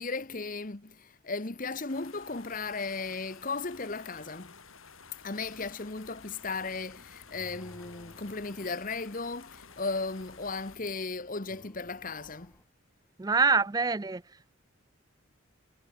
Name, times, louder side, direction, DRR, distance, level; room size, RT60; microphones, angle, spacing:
voice 1, 0.0-4.5 5.2-12.5, left 3 dB, 40° left, 1.2 m, -36 dB
sound 1, 1.9-10.8, left 5 dB, 85° left, 4.7 m, -53 dB
sound 2, 5.4-12.6, equal, 10° left, 1.8 m, -58 dB
voice 2, 13.2-14.5, right 4 dB, 20° right, 0.4 m, -26 dB
head